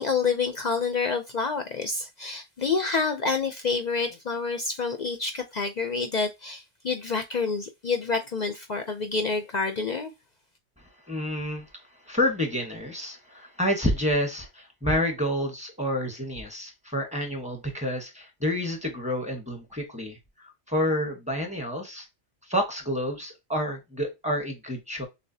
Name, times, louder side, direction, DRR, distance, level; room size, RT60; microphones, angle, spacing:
voice 1, 0.0-10.1, left 4 dB, 55° left, 0.5 m, -28 dB
voice 2, 10.8-11.7 12.0-20.2 20.7-22.1 22.4-25.1, equal, 5° right, 1.0 m, -29 dB
6.6 x 2.2 x 2.7 m
omnidirectional pair, 1.2 m